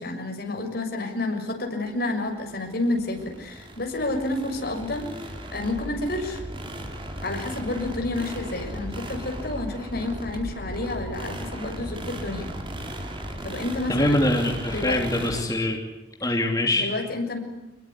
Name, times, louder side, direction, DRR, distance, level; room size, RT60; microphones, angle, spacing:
voice 1, 0.0-5.1 5.5-6.4 7.2-12.5 13.4-14.3 14.7-15.2 16.7-17.4, left 2 dB, 60° left, 3 dB, 6.6 m, -30 dB
sound 1, 2.1-15.4, right 1 dB, 30° right, 4.7 m, -36 dB
voice 2, 13.9-15.8 16.2-16.9, left 1 dB, 20° left, 1 dB, 2.9 m, -23 dB
27.0 x 22.0 x 9.8 m, 1.0 s
head